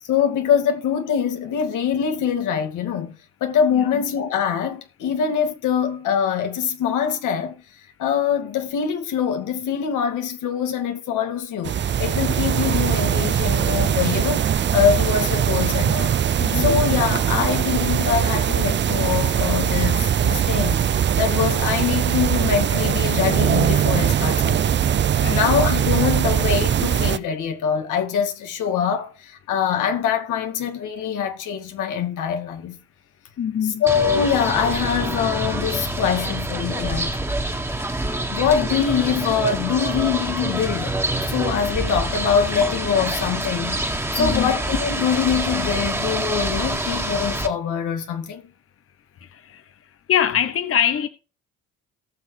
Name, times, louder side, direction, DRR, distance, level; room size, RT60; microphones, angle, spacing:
voice 1, 0.0-3.2 3.4-7.6 8.0-16.1 16.5-24.7 25.3-32.8 33.6-37.1 38.3-41.0 41.3-48.4, left 7 dB, 85° left, 2.3 m, -23 dB
sound 1, 11.6-27.2, right 9 dB, 40° right, 0.5 m, -21 dB
voice 2, 16.3-16.7 25.2-25.5 33.4-33.8 44.2-44.5 49.2-49.7 50.1-51.1, left 9 dB, 50° left, 0.9 m, -24 dB
sound 2, 33.9-47.5, right 1 dB, 10° right, 2.0 m, -26 dB
18.5 x 6.3 x 3.3 m
cardioid pair, 90°, 30 cm